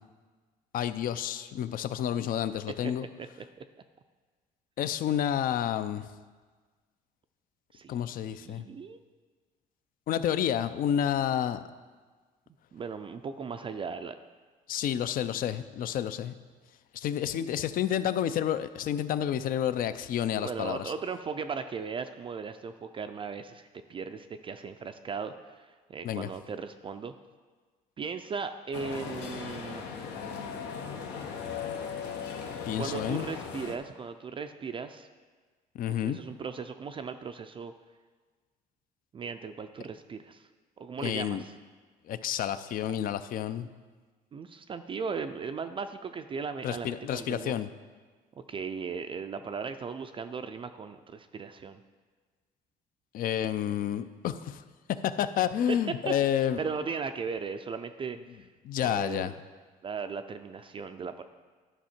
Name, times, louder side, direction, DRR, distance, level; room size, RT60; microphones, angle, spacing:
voice 1, 0.7-3.1 4.8-6.1 7.9-8.6 10.1-11.6 14.7-16.3 16.9-20.9 26.0-26.3 32.7-33.3 35.7-36.2 41.0-41.4 42.1-43.7 46.6-47.7 53.1-54.6 55.0-56.6 58.6-59.3, left 10 dB, 55° left, 13 dB, 0.5 m, -30 dB
voice 2, 3.2-3.6 7.7-9.0 12.7-14.2 20.3-27.1 28.0-30.0 32.8-35.1 35.9-37.7 39.1-40.5 40.8-41.6 43.6-43.7 44.3-47.5 48.4-51.8 55.7-55.8 56.1-56.2 56.4-58.5 58.8-59.3 59.8-61.2, right 5 dB, 30° right, 8 dB, 0.4 m, -37 dB
sound 1, 28.7-33.8, left 6 dB, 80° left, 1.0 m, -38 dB
11.0 x 5.6 x 4.4 m, 1.4 s
cardioid pair, 110°, 17 cm